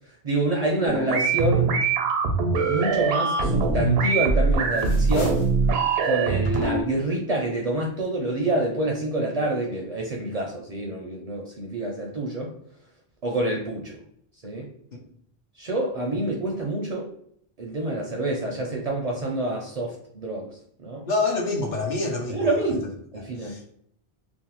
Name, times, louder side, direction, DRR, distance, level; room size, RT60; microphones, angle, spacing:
voice 1, 0.2-1.7 2.7-5.4 6.0-12.5 13.2-14.0 14.4-14.7 15.6-17.1 17.6-21.1 22.3-23.6, right 2 dB, 50° right, -1 dB, 0.5 m, -27 dB
sound 1, 0.9-6.8, right 4 dB, 90° right, 0.8 m, -22 dB
sound 2, 3.9-4.3 4.6-5.6 6.4-7.1, left 3 dB, 85° left, 0.9 m, -37 dB
voice 2, 21.0-22.7 23.2-23.7, left 3 dB, 55° left, 0 dB, 0.6 m, -28 dB
2.6 x 2.1 x 2.9 m, 0.66 s
omnidirectional pair, 1.0 m